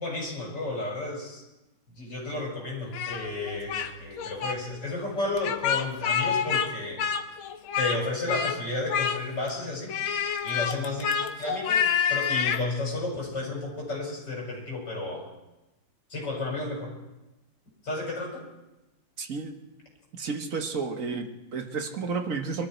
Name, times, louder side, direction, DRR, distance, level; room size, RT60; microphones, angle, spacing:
voice 1, 0.0-1.4 2.0-7.0 7.8-9.9 10.4-11.1 11.4-11.8 12.1-15.3 16.1-16.9 17.8-18.4, left 2 dB, 55° left, -2 dB, 6.2 m, -32 dB
Speech, 2.9-3.9 4.2-4.6 5.4-6.7 7.0-8.0 8.3-8.6 8.9-9.5 9.9-12.6, left 7 dB, 85° left, 1.8 m, -27 dB
voice 2, 19.2-19.6 20.1-22.7, right 4 dB, 45° right, 4 dB, 1.5 m, -32 dB
22.5 x 13.0 x 4.5 m, 0.99 s
omnidirectional pair, 2.2 m